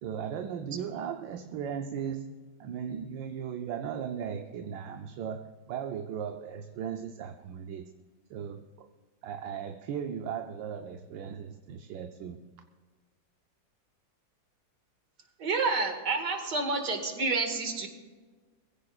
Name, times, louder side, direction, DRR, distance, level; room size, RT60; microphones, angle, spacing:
voice 1, 0.0-7.9 8.3-8.9 9.2-12.5, right 8 dB, 80° right, 5 dB, 1.4 m, -37 dB
voice 2, 15.4-17.9, right 3 dB, 65° right, 4 dB, 2.4 m, -29 dB
22.0 x 16.0 x 2.4 m, 1.4 s
omnidirectional pair, 2.0 m